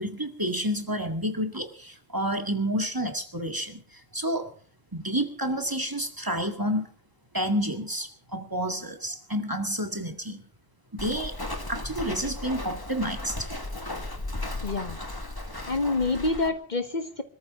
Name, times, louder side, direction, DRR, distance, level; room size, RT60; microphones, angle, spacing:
voice 1, 0.0-4.5 4.9-6.9 7.3-10.4 10.9-11.4 11.7-13.5, equal, 20° right, 6 dB, 2.0 m, -30 dB
Walk footsteps, 11.0-16.5, left 2 dB, 20° left, 1.8 m, -35 dB
voice 2, 14.6-15.0 15.7-17.2, left 3 dB, 45° left, 9 dB, 1.2 m, -27 dB
25.5 x 14.0 x 3.7 m, 0.42 s
omnidirectional pair, 1.1 m